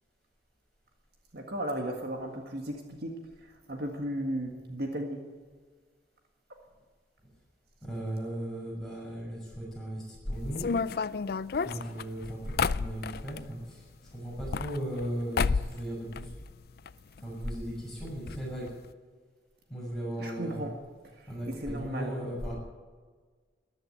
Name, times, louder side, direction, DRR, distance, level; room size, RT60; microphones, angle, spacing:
voice 1, 1.3-5.2 20.2-20.8 21.0-22.2, right 1 dB, 55° right, 2 dB, 1.8 m, -36 dB
voice 2, 7.8-10.7 11.6-13.8 14.1-16.3 17.2-18.7 19.7-20.7 21.3-22.6, equal, ahead, -5 dB, 6.5 m, -36 dB
sound 1, 10.5-13.4 14.3-15.1 15.3-15.8 16.1-16.9 17.2-17.3 17.5-17.6 18.3-18.4 18.7-18.8, left 5 dB, 50° left, 0.4 m, -30 dB
14.0 x 11.0 x 9.3 m, 1.5 s
head